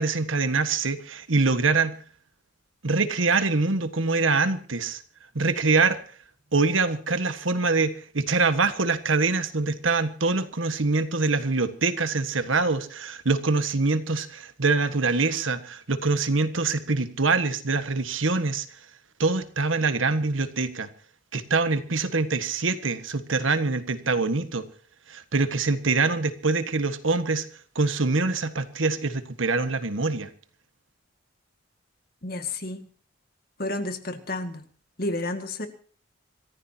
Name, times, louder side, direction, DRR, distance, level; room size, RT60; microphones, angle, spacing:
voice 1, 0.0-2.0 2.8-5.0 5.3-6.0 6.5-18.6 19.2-20.9 21.3-24.7 25.1-27.5 27.7-30.3, right 3 dB, 80° right, 10 dB, 1.5 m, -24 dB
voice 2, 32.2-32.9 33.6-34.6 35.0-35.7, left 2 dB, 50° left, 8 dB, 2.0 m, -31 dB
26.5 x 15.0 x 2.9 m, 0.42 s
head